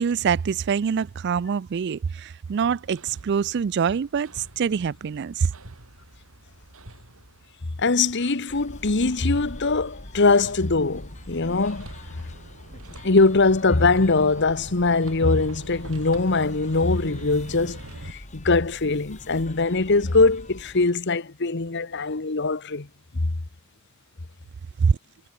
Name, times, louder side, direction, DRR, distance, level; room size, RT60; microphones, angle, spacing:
voice 1, 0.0-5.5 24.8-25.0, right 6 dB, 55° right, 0.4 m, -24 dB
Hammer, 2.4-18.1, right 1 dB, 80° right, 4.8 m, -45 dB
voice 2, 7.8-11.9 13.0-17.8 18.0-22.9 23.2-23.3, left 3 dB, 55° left, 1.2 m, -22 dB
sound 1, 8.5-20.9, left 1 dB, 35° left, 3.2 m, -44 dB
head